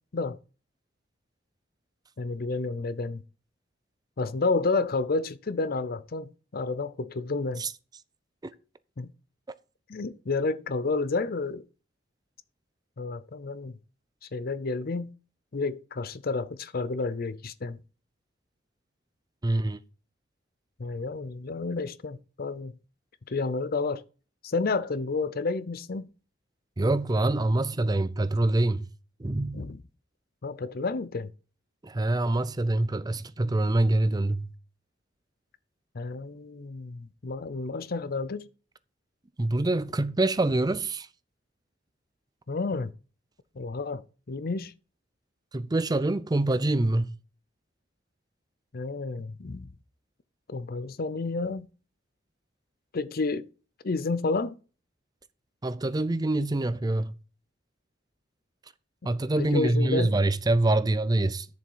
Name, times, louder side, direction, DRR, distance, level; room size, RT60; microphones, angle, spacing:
voice 1, 2.2-3.2 4.2-7.6 9.0-9.1 9.9-11.6 13.0-13.7 14.3-15.1 15.5-17.8 20.8-22.7 23.3-24.0 24.4-26.1 29.5-29.8 30.4-31.3 35.9-38.5 42.5-42.9 43.6-44.0 44.3-44.7 48.7-49.7 50.5-51.7 52.9-53.5 53.8-54.6 59.4-60.1, left 3 dB, 55° left, 0.6 m, -30 dB
voice 2, 19.4-19.8 26.8-28.9 29.2-29.6 31.8-34.5 39.4-41.1 45.5-47.1 55.6-57.1 59.0-61.5, right 2 dB, 20° right, 0.5 m, -25 dB
11.0 x 7.1 x 4.7 m
head